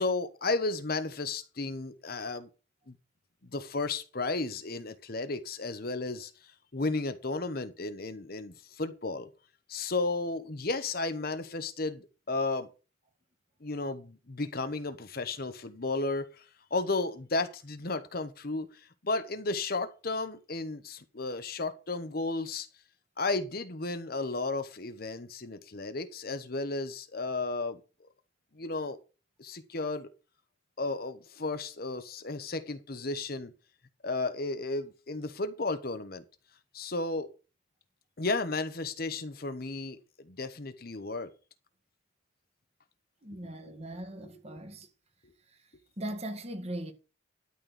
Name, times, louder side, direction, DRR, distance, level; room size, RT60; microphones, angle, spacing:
voice 1, 0.0-2.5 2.9-3.0 3.5-6.3 6.7-9.3 9.7-12.7 13.6-16.4 16.7-18.7 19.0-22.7 23.2-27.8 28.5-29.0 29.4-30.1 30.8-33.5 34.0-36.2 36.7-37.3 38.2-41.3 43.4-43.7 44.2-44.3, left 3 dB, 50° left, 1.0 m, -33 dB
voice 2, 43.2-44.9 46.0-46.9, right 1 dB, 35° right, 1.9 m, -39 dB
12.5 x 4.4 x 8.1 m
head